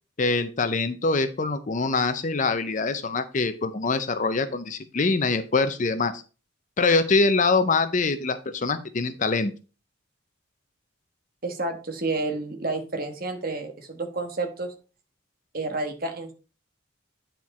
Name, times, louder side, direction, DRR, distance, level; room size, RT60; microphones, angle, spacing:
voice 1, 0.2-6.2 6.8-9.5, left 3 dB, 40° left, 10 dB, 0.6 m, -24 dB
voice 2, 11.4-14.7 15.5-16.3, right 3 dB, 45° right, 6 dB, 1.3 m, -30 dB
9.5 x 4.5 x 4.2 m, 0.34 s
head